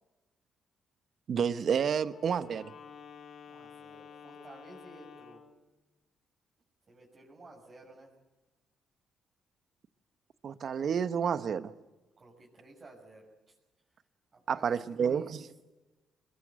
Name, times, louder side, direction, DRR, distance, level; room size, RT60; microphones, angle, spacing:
voice 1, 1.3-2.7 10.4-11.7 14.5-15.5, right 7 dB, 55° right, 11 dB, 1.2 m, -30 dB
Wind instrument woodwind instrument, 2.0-5.6, left 6 dB, 55° left, 3.6 m, -51 dB
voice 2, 3.4-5.5 6.9-8.1 12.2-13.5 14.3-15.3, right 2 dB, 35° right, -3 dB, 6.4 m, -54 dB
22.0 x 21.5 x 8.2 m, 1.2 s
cardioid pair, 90°, 0 cm